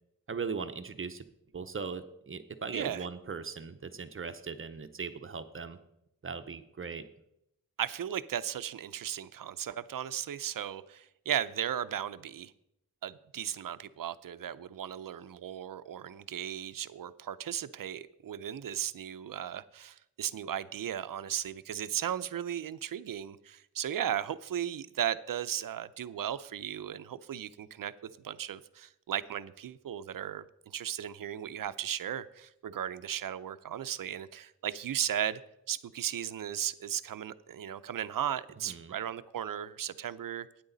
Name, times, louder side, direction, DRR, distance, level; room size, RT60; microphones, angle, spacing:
voice 1, 0.3-1.2 1.5-5.8 6.2-7.0 38.7-38.9, right 5 dB, 40° right, 9 dB, 0.7 m, -39 dB
voice 2, 2.7-3.1 7.8-12.5 13.0-27.9 28.2-35.4 35.7-40.5, right 10 dB, 70° right, 13 dB, 0.6 m, -36 dB
12.0 x 9.6 x 3.9 m, 0.81 s
wide cardioid pair, 120°, 34 cm